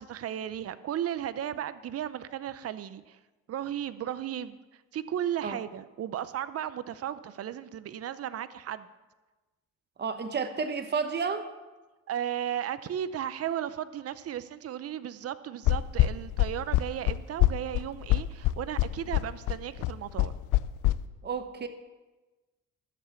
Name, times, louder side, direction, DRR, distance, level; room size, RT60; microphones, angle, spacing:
voice 1, 0.0-3.2 3.5-4.6 4.9-8.9 12.1-20.3, right 10 dB, 55° right, 14 dB, 0.7 m, -35 dB
voice 2, 10.0-11.4 21.2-21.7, right 5 dB, 35° right, 8 dB, 1.1 m, -31 dB
sound 1, 15.7-20.9, left 16 dB, 85° left, 0.6 m, -24 dB
13.0 x 7.5 x 7.1 m, 1.2 s
cardioid pair, 90°, 30 cm